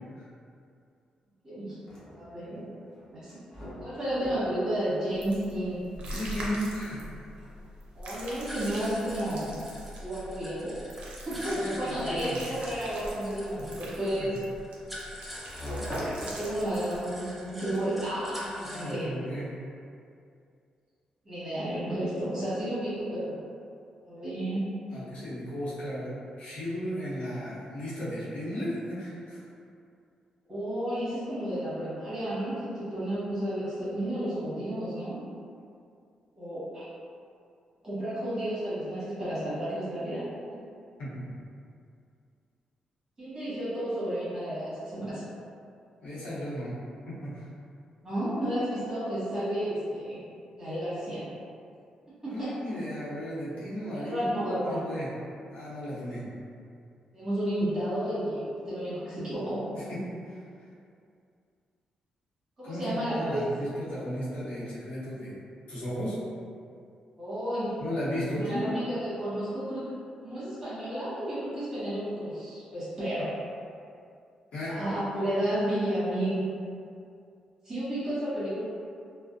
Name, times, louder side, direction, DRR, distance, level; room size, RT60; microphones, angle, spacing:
voice 1, 1.4-1.7 2.1-2.7 3.1-3.4 3.8-5.8 7.9-9.6 10.0-10.8 11.2-14.4 15.8-19.1 21.2-23.4 24.1-24.6 30.5-35.2 36.4-36.8 37.8-40.2 40.5-40.6 43.2-45.2 48.0-50.2 50.6-51.2 52.2-52.5 53.9-54.8 57.1-59.6 62.6-63.4 67.2-67.7 68.3-69.8 70.2-73.3 74.7-76.4 77.6-78.6, right 1 dB, 25° right, -12 dB, 1.2 m, -32 dB
sound 1, 1.7-18.2, equal, 20° left, 0.9 m, -46 dB
sound 2, 5.1-17.0, right 1 dB, 70° right, 0.5 m, -43 dB
voice 2, 6.0-7.1 11.5-12.5 18.6-19.5 24.9-26.1 26.4-29.4 41.0-41.3 46.0-46.8 47.1-47.5 52.3-55.1 55.5-56.2 59.8-60.0 60.2-60.4 62.6-65.3 65.7-66.2 67.8-68.7 74.5-74.7, equal, 75° left, -10 dB, 0.8 m, -35 dB
sound 3, 8.5-18.9, equal, 5° right, 0.4 m, -45 dB
2.5 x 2.0 x 2.5 m, 2.4 s
cardioid pair, 120°, 2 cm